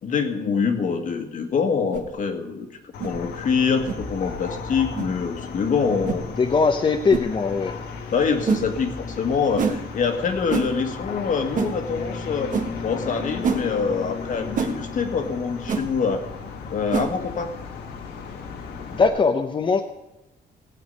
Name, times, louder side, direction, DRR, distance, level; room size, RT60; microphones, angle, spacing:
voice 1, 0.0-2.7 3.0-6.3 8.1-12.5 12.8-16.3 16.7-17.5, left 5 dB, 55° left, 6 dB, 1.7 m, -25 dB
sound 1, 1.9-2.1 3.0-3.2 3.9-4.0 4.9-5.1 6.0-6.2 7.1-7.3 8.5-8.7 9.6-9.8 10.5-10.7 11.5-11.7 12.5-12.7 13.4-13.6 14.5-14.7 15.7-15.8 16.9-17.1, right 5 dB, 55° right, 1.4 m, -25 dB
sound 2, 2.9-19.1, left 5 dB, 90° left, 1.6 m, -35 dB
voice 2, 6.4-7.7 18.9-19.8, left 4 dB, 30° left, 5 dB, 0.8 m, -20 dB
17.0 x 8.5 x 5.5 m, 0.96 s
cardioid pair, 110°, 16 cm